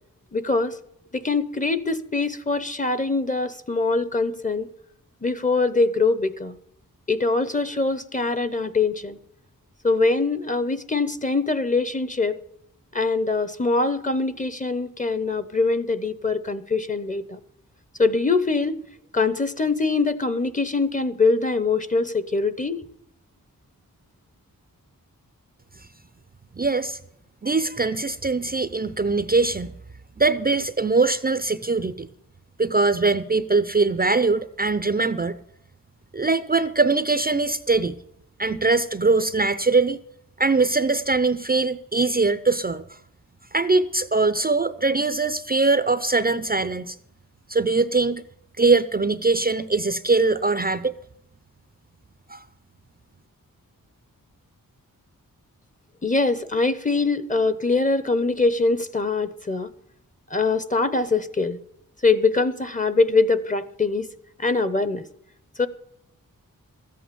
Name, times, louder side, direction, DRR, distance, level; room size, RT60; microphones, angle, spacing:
voice 1, 0.3-0.8 1.1-4.7 5.2-6.5 7.1-9.2 9.8-12.4 12.9-17.4 18.0-18.7 19.1-22.8 56.0-59.7 60.3-61.6 62.0-64.1 64.4-65.0 65.6-65.7, left 3 dB, 20° left, 0.8 m, -23 dB
voice 2, 26.5-27.0 27.4-29.7 30.2-32.1 32.6-35.4 36.1-38.0 38.4-40.0 40.4-42.8 43.5-47.0 47.5-48.2 48.6-51.0 52.3-52.4, right 3 dB, 25° right, 0.5 m, -22 dB
13.5 x 8.6 x 6.9 m
wide cardioid pair, 85°, 34 cm